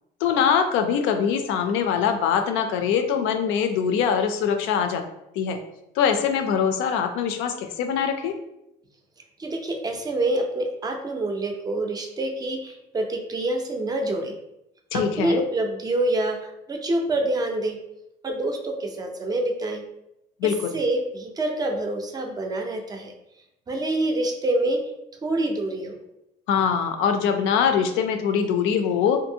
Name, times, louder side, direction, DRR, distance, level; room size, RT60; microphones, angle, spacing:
voice 1, 0.2-5.0 5.3-5.6 6.0-8.3 14.9-15.4 20.4-20.8 26.5-29.2, left 7 dB, 85° left, 6 dB, 0.4 m, -23 dB
voice 2, 9.4-14.3 14.9-17.8 18.2-19.8 20.7-23.1 23.7-24.8 25.2-26.0, right 1 dB, 20° right, 3 dB, 0.4 m, -26 dB
2.6 x 2.6 x 2.7 m, 0.85 s
cardioid pair, 130°, 20 cm